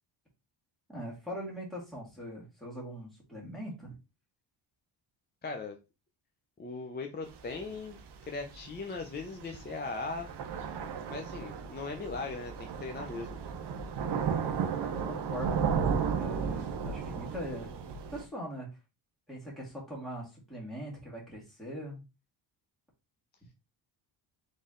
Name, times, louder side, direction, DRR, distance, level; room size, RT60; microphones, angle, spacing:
voice 1, 0.9-3.9 14.4-15.6 16.2-17.7 18.1-18.7 19.3-22.0, equal, ahead, -4 dB, 1.9 m, -41 dB
voice 2, 5.4-5.8 6.6-8.0 8.2-10.3 11.1-13.4, left 3 dB, 20° left, 3 dB, 0.6 m, -39 dB
Thunder / Rain, 7.3-18.2, right 6 dB, 55° right, 0.9 m, -34 dB
4.2 x 3.3 x 3.7 m, 0.28 s
cardioid pair, 135°, 48 cm